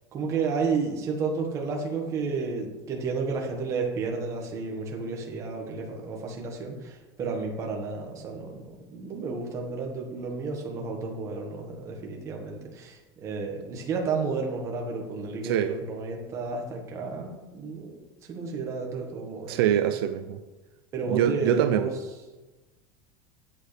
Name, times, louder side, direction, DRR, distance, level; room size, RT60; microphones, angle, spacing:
voice 1, 0.1-19.6 20.9-21.9, right 4 dB, 25° right, 1.6 m, -32 dB
voice 2, 15.4-15.8 19.5-20.4 21.1-21.9, right 10 dB, 75° right, 0.7 m, -24 dB
13.0 x 8.4 x 3.4 m
supercardioid pair, 170°, 13 cm